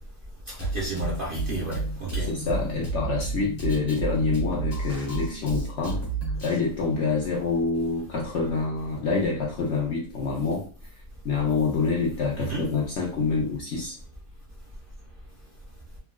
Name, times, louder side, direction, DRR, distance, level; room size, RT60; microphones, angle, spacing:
voice 1, 0.5-2.3 12.4-12.7, right 2 dB, 45° right, -4 dB, 0.8 m, -32 dB
Drum kit, 0.6-6.6, right 3 dB, 35° left, 1.3 m, -31 dB
voice 2, 2.1-6.1 6.4-10.6 11.2-14.0, left 4 dB, 60° left, -3 dB, 0.8 m, -27 dB
3.7 x 2.3 x 2.2 m, 0.40 s
omnidirectional pair, 1.7 m